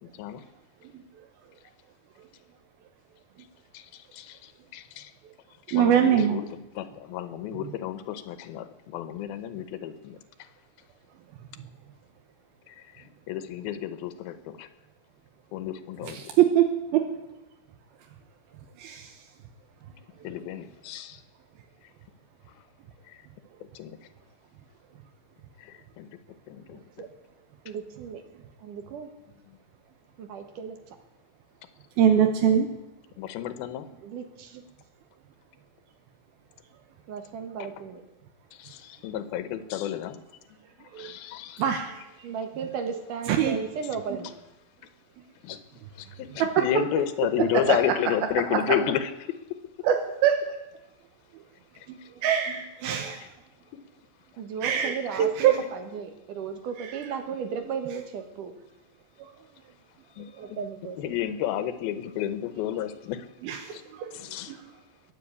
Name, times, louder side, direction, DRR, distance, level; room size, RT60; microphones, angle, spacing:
voice 1, 0.0-0.4 3.7-5.1 5.7-10.2 12.7-12.8 13.3-14.7 15.5-16.3 20.2-21.2 23.1-23.2 23.7-24.0 25.6-26.1 26.5-26.8 33.2-33.9 37.6-37.7 38.5-40.2 40.5-41.8 45.4-45.6 46.0-49.4 52.0-52.1 60.2-60.6 61.0-63.3 63.7-63.8 64.1-64.6, left 11 dB, 80° left, 11 dB, 2.8 m, -32 dB
voice 2, 5.7-6.4 16.1-17.0 18.8-19.1 32.0-32.7 40.9-41.1 41.6-42.0 43.3-43.6 47.7-47.8 49.8-50.4 51.9-53.2 54.6-55.6 59.2-59.3 63.4-64.2 64.5-64.6, right 9 dB, 85° right, 4 dB, 2.9 m, -23 dB
voice 3, 27.7-28.2 28.6-29.1 30.2-30.8 34.0-34.6 37.1-38.0 42.2-44.3 52.8-53.0 54.4-58.5 60.4-61.0, right 6 dB, 65° right, 6 dB, 2.8 m, -35 dB
21.5 x 7.8 x 8.4 m, 0.96 s
omnidirectional pair, 4.3 m